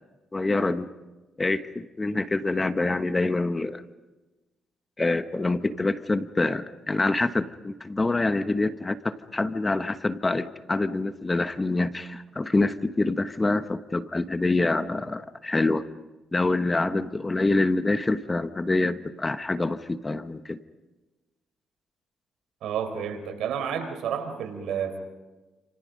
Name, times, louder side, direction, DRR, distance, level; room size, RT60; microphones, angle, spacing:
voice 1, 0.3-0.9 1.4-3.8 5.0-15.8 16.3-20.6, left 2 dB, 20° left, 10 dB, 1.2 m, -26 dB
voice 2, 22.6-25.0, right 8 dB, 80° right, 6 dB, 4.8 m, -30 dB
29.0 x 27.5 x 5.4 m, 1.2 s
cardioid pair, 90°, 0 cm